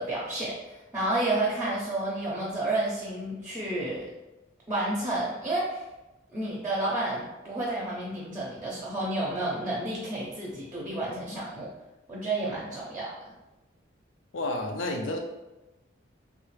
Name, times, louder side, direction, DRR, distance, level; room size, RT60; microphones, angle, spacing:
voice 1, 0.0-4.0 4.7-5.8 6.3-11.7 12.1-13.1, right 2 dB, 15° right, -5 dB, 0.6 m, -30 dB
voice 2, 14.3-15.2, left 2 dB, 75° left, 3 dB, 0.5 m, -30 dB
3.2 x 2.5 x 3.2 m, 1.0 s
head